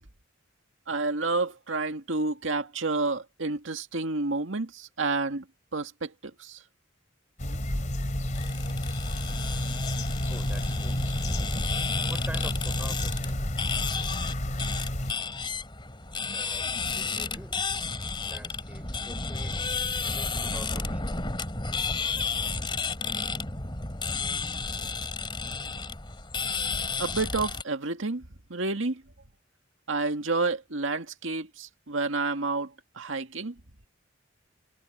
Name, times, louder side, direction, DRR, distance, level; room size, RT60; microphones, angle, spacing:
voice 1, 0.9-5.4 5.7-6.6 27.0-28.2 28.5-29.0 29.9-33.6, right 3 dB, 85° right, 2.0 m, -30 dB
sound 1, 7.4-15.1, left 1 dB, 40° left, 3.4 m, -31 dB
sound 2, 8.3-27.6, left 4 dB, 25° left, 3.0 m, -32 dB
voice 2, 10.3-11.1 12.1-13.6 16.3-17.6 18.2-21.2, right 1 dB, 10° right, 5.8 m, -46 dB
head